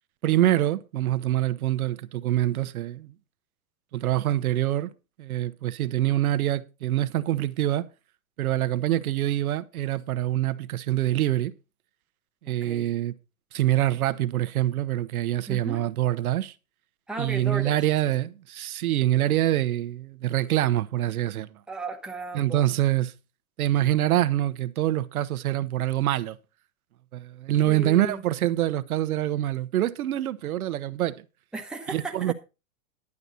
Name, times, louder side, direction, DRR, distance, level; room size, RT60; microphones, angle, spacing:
voice 1, 0.2-3.1 3.9-4.9 5.2-7.8 8.4-11.5 12.4-13.1 13.5-16.5 17.2-21.5 22.3-23.1 23.6-26.4 27.1-31.2 31.9-32.3, right 13 dB, 80° right, 1.0 m, -25 dB
voice 2, 12.5-12.9 15.5-15.8 17.1-17.8 21.7-22.7 27.6-28.2 31.5-32.3, right 2 dB, ahead, 1.1 m, -35 dB
11.0 x 9.8 x 4.0 m
hypercardioid pair, 140°, 42 cm